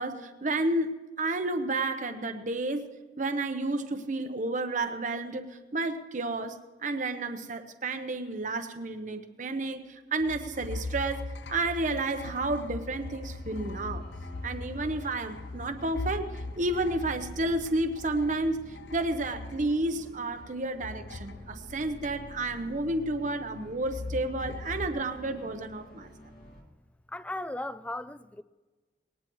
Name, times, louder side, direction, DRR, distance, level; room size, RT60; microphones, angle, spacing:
voice 1, 0.0-2.9 3.2-14.1 14.4-26.1, right 2 dB, 45° right, 0.9 m, -31 dB
sound 1, 10.2-20.5 20.8-22.6 23.8-24.9, left 3 dB, 85° left, 0.8 m, -40 dB
The Abyss, 11.9-26.6, equal, 55° left, 2.2 m, -49 dB
voice 2, 27.1-28.4, left 1 dB, 10° left, 0.3 m, -36 dB
20.5 x 18.5 x 3.1 m
head